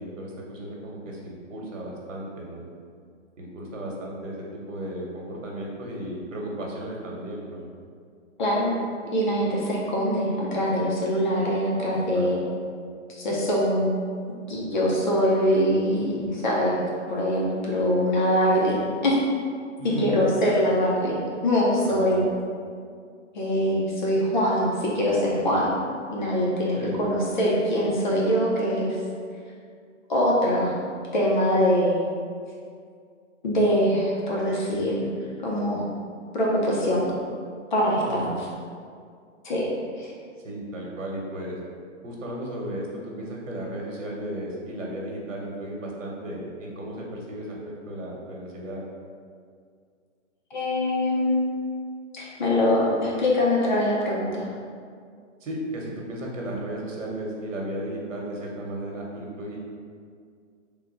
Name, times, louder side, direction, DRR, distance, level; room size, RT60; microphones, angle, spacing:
voice 1, 0.0-2.7 3.4-7.7 12.1-12.4 19.8-20.3 21.8-22.2 26.7-27.1 38.0-38.4 40.4-41.6 42.0-48.8 55.4-59.6, right 1 dB, 90° right, -2 dB, 1.1 m, -34 dB
voice 2, 8.4-8.8 9.1-12.4 13.1-13.9 14.5-16.8 17.1-19.2 19.8-21.2 21.4-22.3 23.3-25.8 26.1-29.0 30.1-30.8 31.1-32.0 33.4-35.1 35.4-35.9 36.3-37.1 37.7-38.3 39.4-39.7 40.0-40.1 50.5-51.4 52.1-54.5, equal, 40° left, -4 dB, 0.6 m, -23 dB
3.6 x 2.2 x 3.8 m, 2.2 s
hypercardioid pair, 170°, 37 cm